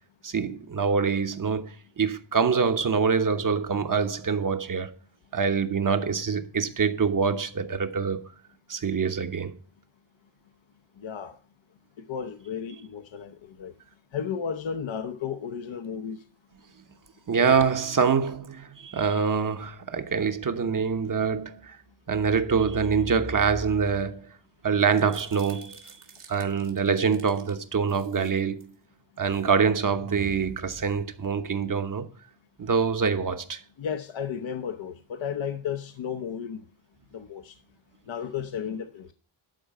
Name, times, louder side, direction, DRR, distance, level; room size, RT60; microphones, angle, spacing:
voice 1, 0.2-4.9 5.3-8.3 8.7-9.6 17.3-21.8 22.1-24.3 24.6-26.0 26.3-28.8 29.2-32.1 32.6-33.6, right 6 dB, 40° right, 1.1 m, -25 dB
voice 2, 11.0-11.4 12.0-13.7 14.1-16.2 33.8-36.6 37.1-37.6 38.1-39.1, left 7 dB, 65° left, 0.9 m, -33 dB
sound 1, 24.8-27.5 27.9-28.7 29.2-29.5 29.8-31.5, right 5 dB, 80° right, 2.2 m, -47 dB
11.5 x 4.6 x 7.5 m
wide cardioid pair, 95°, 49 cm